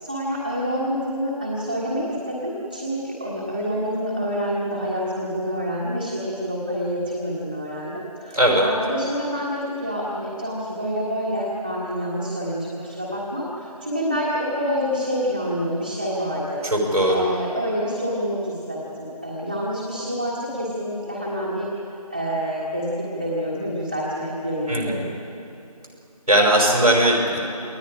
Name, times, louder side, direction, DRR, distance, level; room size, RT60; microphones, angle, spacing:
voice 1, 0.0-16.6 17.1-21.7 22.1-25.0, equal, 20° right, -7 dB, 1.6 m, -27 dB
voice 2, 8.3-8.7 16.6-17.2 24.7-25.0 26.3-27.4, right 1 dB, 85° right, -2 dB, 5.7 m, -19 dB
29.0 x 19.0 x 4.9 m, 2.8 s
figure-of-eight pair, 175°, 20 cm